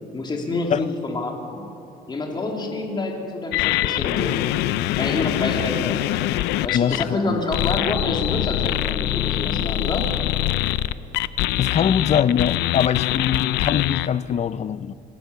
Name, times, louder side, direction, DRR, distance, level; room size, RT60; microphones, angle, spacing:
voice 1, 0.1-1.6 2.1-4.4 5.0-6.1 6.6-10.0, left 2 dB, 25° left, 3.1 m, -27 dB
sound 1, 3.5-7.0 7.5-14.1, left 15 dB, 90° left, 0.6 m, -24 dB
voice 2, 6.7-7.4 11.6-14.9, left 8 dB, 40° left, 0.6 m, -22 dB
25.5 x 15.5 x 7.0 m
cardioid pair, 110°, 17 cm